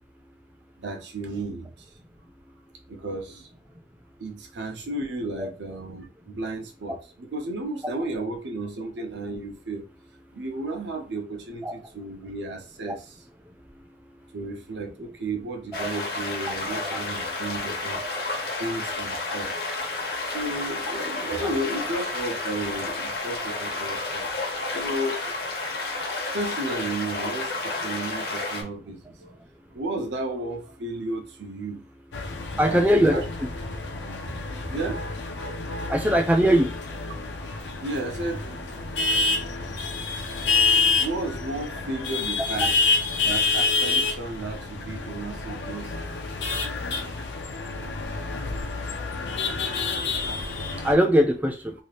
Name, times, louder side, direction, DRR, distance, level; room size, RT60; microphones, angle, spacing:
voice 1, 0.8-1.7 2.9-3.5 4.2-9.9 10.3-13.0 14.3-18.1 18.6-19.5 20.2-24.3 24.7-25.2 26.3-29.4 29.7-31.8 32.5-32.8 33.1-33.2 34.4-35.1 37.8-39.1 40.7-42.7 43.2-46.1, right 2 dB, 85° right, 2 dB, 0.6 m, -33 dB
sound 1, 15.7-28.6, left 3 dB, 60° left, 0.8 m, -31 dB
voice 2, 16.7-17.0 17.9-18.1 32.6-33.5 34.3-34.4 35.9-36.7 50.8-51.7, equal, 10° right, 4 dB, 0.4 m, -21 dB
sound 2, 32.1-51.0, left 4 dB, 85° left, 0.6 m, -28 dB
2.8 x 2.4 x 3.2 m, 0.35 s
head